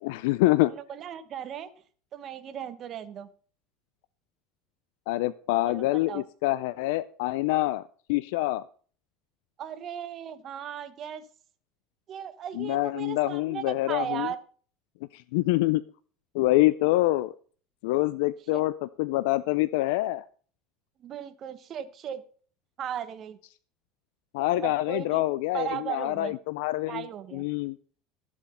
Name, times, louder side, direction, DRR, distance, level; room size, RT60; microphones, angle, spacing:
voice 1, 0.0-0.7 5.1-8.6 12.6-14.3 15.1-15.8 16.3-17.3 17.8-18.7 19.0-20.2 24.3-27.0 27.3-27.8, left 18 dB, 80° left, 15 dB, 0.4 m, -26 dB
voice 2, 0.6-1.7 2.1-3.3 5.6-6.2 9.6-11.2 12.1-14.4 18.5-18.6 21.0-22.2 22.8-23.4 24.6-25.2 25.5-26.4 26.9-27.5, right 9 dB, 35° right, 11 dB, 1.1 m, -36 dB
13.0 x 7.3 x 5.3 m, 0.43 s
cardioid pair, 145°, 0 cm